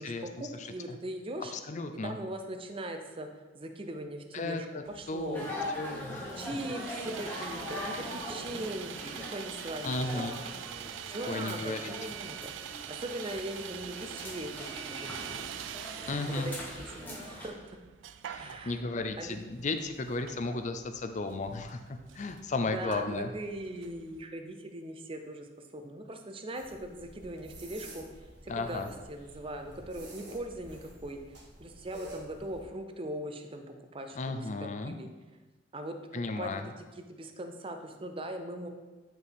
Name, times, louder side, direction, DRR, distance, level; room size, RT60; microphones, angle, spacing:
voice 1, 0.0-1.5 2.0-3.3 3.5-4.7 4.9-5.5 6.4-10.3 11.1-12.5 12.9-15.4 16.3-16.6 16.8-17.5 18.3-18.8 19.2-19.4 22.6-25.5 25.7-28.0 28.5-31.2 31.6-33.6 33.9-35.1 35.7-38.7, right 1 dB, 30° right, 5 dB, 0.6 m, -40 dB
voice 2, 0.6-1.0 1.5-2.2 4.3-4.8 5.1-5.5 5.8-6.4 9.8-10.4 11.3-11.9 16.1-16.5 18.3-23.3 28.5-28.9 34.1-35.0 36.1-36.7, left 3 dB, 40° left, 8 dB, 0.5 m, -34 dB
Sawing, 4.9-24.2, right 10 dB, 85° right, 0.3 m, -45 dB
sound 1, 5.3-17.5, left 1 dB, 10° left, 1.3 m, -41 dB
sound 2, 26.5-32.6, right 1 dB, 65° right, 1.6 m, -49 dB
9.0 x 4.5 x 3.5 m, 1.3 s
head